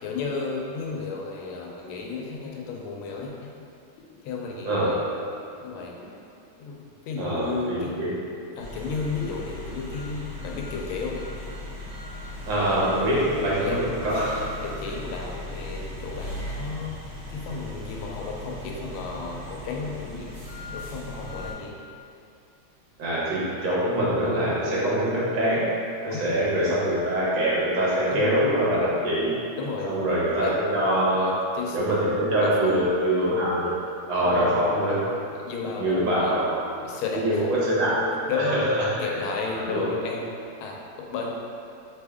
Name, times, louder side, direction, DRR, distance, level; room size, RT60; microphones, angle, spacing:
voice 1, 0.0-3.5 4.2-5.0 5.6-5.9 6.6-7.9 8.6-11.2 13.6-13.8 14.6-20.3 20.6-21.8 26.1-26.3 26.7-26.8 28.1-28.4 29.6-29.9 30.4-30.5 31.1-31.8 32.4-32.9 34.2-34.6 35.3-36.3 36.8-37.5 38.3-38.7 39.0-41.3, left 4 dB, 90° left, -1 dB, 1.5 m, -33 dB
voice 2, 7.2-8.1 12.5-14.4 23.0-25.7 26.0-29.3 29.8-31.3 31.7-33.7 34.1-35.0 35.8-36.7 37.1-38.6 39.1-39.2 39.5-39.9, right 1 dB, 65° right, -8 dB, 1.6 m, -24 dB
sound 1, 8.6-21.5, left 1 dB, 40° right, 1.2 m, -37 dB
3.7 x 3.5 x 3.4 m, 2.6 s
omnidirectional pair, 2.3 m